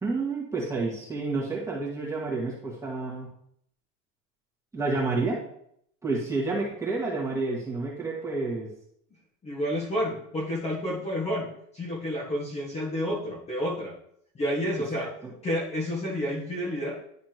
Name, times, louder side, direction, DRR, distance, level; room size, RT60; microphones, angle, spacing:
voice 1, 0.0-3.3 4.7-5.4 6.0-8.7 14.9-15.3, right 3 dB, 10° right, -5 dB, 1.7 m, -29 dB
voice 2, 9.4-13.9 14.3-15.1 15.4-17.0, equal, 15° left, -4 dB, 1.5 m, -30 dB
11.0 x 4.2 x 2.9 m, 0.70 s
supercardioid pair, 155°, 38 cm